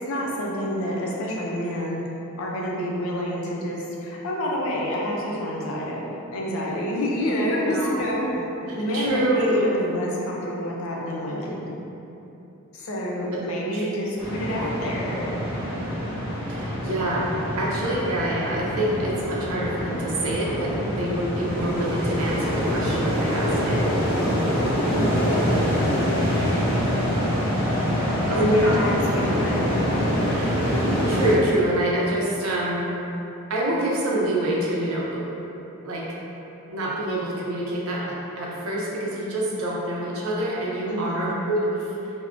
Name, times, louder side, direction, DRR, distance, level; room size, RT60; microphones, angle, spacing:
voice 1, 0.0-2.0 2.4-6.0 6.3-11.6 12.7-15.3 24.8-25.4 28.3-29.7 40.9-41.3, equal, 70° left, -3 dB, 0.5 m, -28 dB
voice 2, 7.5-8.4 8.9-9.7 13.7-13.9 16.5-17.3 17.6-23.8 26.0-26.5 27.8-28.7 30.3-30.6 31.1-32.9 33.5-35.2 35.8-36.1 36.7-41.9, right 1 dB, 75° right, -4 dB, 0.5 m, -26 dB
sound 1, 14.2-31.3, equal, 10° left, 1.4 m, -25 dB
3.5 x 2.1 x 2.4 m, 3.0 s
head